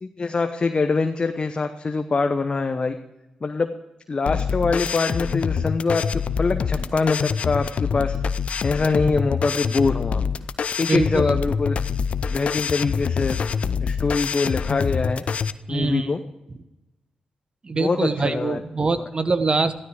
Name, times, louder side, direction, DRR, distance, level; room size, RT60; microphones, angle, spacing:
voice 1, 0.0-2.9 3.4-3.7 4.1-6.0 6.4-8.1 8.6-10.2 10.8-11.7 12.3-13.4 13.8-15.2 15.7-16.2 17.7-18.6, left 4 dB, 45° left, 6 dB, 1.0 m, -24 dB
sound 1, 4.3-15.5, left 6 dB, 60° left, 0.6 m, -25 dB
voice 2, 10.9-11.4 15.7-16.1 17.6-19.8, right 3 dB, 45° right, 11 dB, 1.2 m, -23 dB
13.5 x 12.5 x 5.0 m, 0.96 s
supercardioid pair, 40°, 2 cm